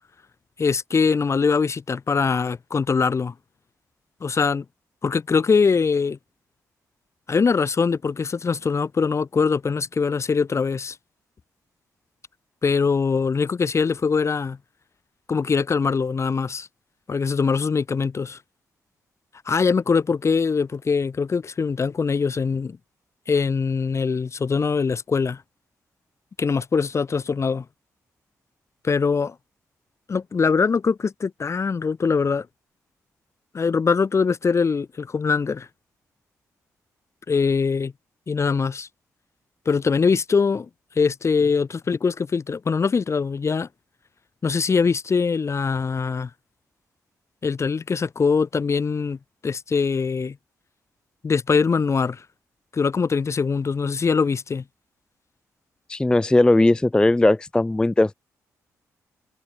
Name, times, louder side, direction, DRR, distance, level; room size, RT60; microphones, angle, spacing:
voice 1, 0.6-3.3 4.2-4.6 5.0-6.2 7.3-11.0 12.6-14.6 15.3-16.7 17.1-18.4 19.5-22.8 23.3-25.4 26.4-27.6 28.8-29.3 30.1-32.5 33.5-35.7 37.3-37.9 38.3-38.9 39.7-40.7 41.0-43.7 44.4-46.3 47.4-50.4 51.2-52.2 52.7-54.6, left 5 dB, 40° left, 0.8 m, -22 dB
voice 2, 55.9-58.1, left 2 dB, 10° left, 0.3 m, -18 dB
hypercardioid pair, 50°, 7 cm